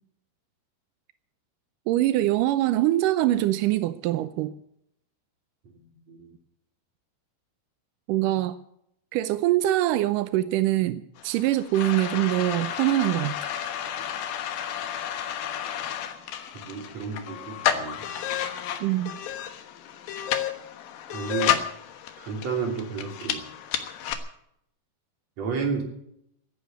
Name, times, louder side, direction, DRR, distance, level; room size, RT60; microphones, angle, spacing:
voice 1, 1.9-4.5 8.1-8.6 9.1-13.4 18.8-19.1, right 14 dB, 80° right, 13 dB, 1.9 m, -23 dB
sound 1, 11.2-24.1, left 10 dB, 70° left, 3.0 m, -31 dB
voice 2, 16.5-18.0 21.1-21.6 22.2-23.4 25.4-25.8, right 5 dB, 45° right, 3 dB, 3.9 m, -31 dB
16.0 x 10.0 x 8.0 m, 0.74 s
omnidirectional pair, 4.5 m